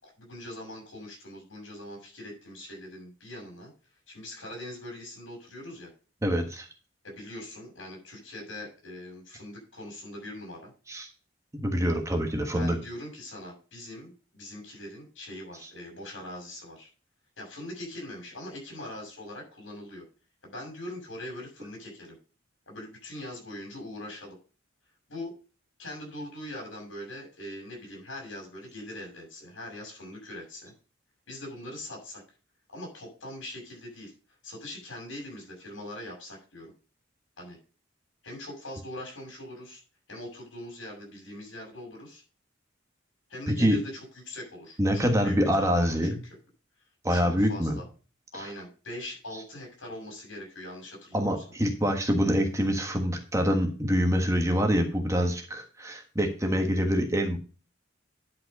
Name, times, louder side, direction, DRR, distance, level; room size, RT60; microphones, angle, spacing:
voice 1, 0.0-3.7 4.1-5.9 7.0-10.7 12.5-16.9 17.4-20.0 20.4-22.2 22.7-24.4 25.1-25.3 25.8-30.7 31.3-32.2 32.7-34.1 34.4-36.7 37.4-37.6 38.2-39.8 40.1-42.2 43.3-46.2 47.1-47.8 48.3-51.3, left 1 dB, 80° left, 0 dB, 6.7 m, -42 dB
voice 2, 6.2-6.7 10.9-11.1 11.5-12.8 43.5-43.8 44.8-46.2 47.0-47.8 48.3-48.5 51.1-57.4, equal, 15° right, 4 dB, 1.4 m, -25 dB
10.5 x 5.7 x 5.3 m, 0.35 s
head